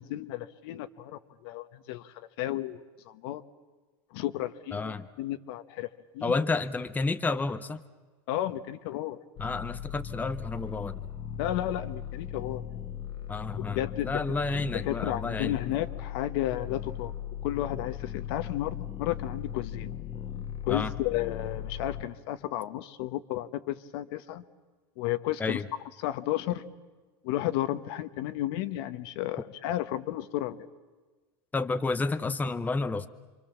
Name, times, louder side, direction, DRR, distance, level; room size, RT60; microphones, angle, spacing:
voice 1, 0.0-3.4 4.1-5.9 6.1-6.4 8.3-9.2 11.4-12.6 13.7-14.2 14.7-17.1 17.4-19.9 20.6-24.4 25.0-25.6 26.0-26.6 27.2-30.6, left 14 dB, 70° left, 11 dB, 1.2 m, -33 dB
voice 2, 4.7-5.1 6.2-7.8 9.4-11.1 13.3-15.5 20.7-20.9 25.4-25.7 31.5-33.1, left 3 dB, 10° left, 10 dB, 0.8 m, -30 dB
sound 1, 9.4-22.0, left 9 dB, 35° left, 1.5 m, -38 dB
28.0 x 24.0 x 7.2 m, 1.3 s
supercardioid pair, 120°, 14 cm